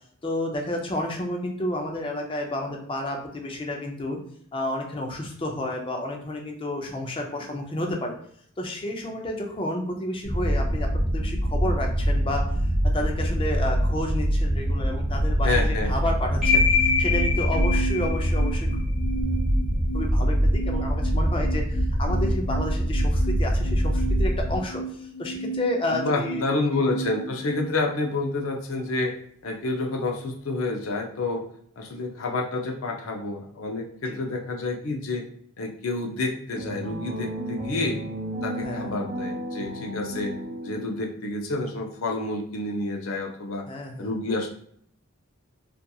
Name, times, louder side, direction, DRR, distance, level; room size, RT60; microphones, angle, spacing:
voice 1, 0.2-4.2 4.5-8.2 8.6-10.9 11.1-12.4 12.9-18.7 19.9-26.5 34.1-34.2 38.6-38.9 43.7-44.1, left 1 dB, 25° left, 1 dB, 0.4 m, -31 dB
sound 1, 10.2-24.6, equal, 60° right, 0.6 m, -24 dB
voice 2, 15.4-15.9 25.9-29.1 29.4-31.4 31.8-35.3 35.6-38.0 38.4-40.3 40.6-43.6 44.0-44.5, left 2 dB, 75° left, 2 dB, 0.5 m, -29 dB
sound 2, 16.4-28.5, left 3 dB, ahead, 1.0 m, -30 dB
sound 3, 36.5-41.1, right 1 dB, 35° right, 0.9 m, -34 dB
2.7 x 2.4 x 2.2 m, 0.63 s
head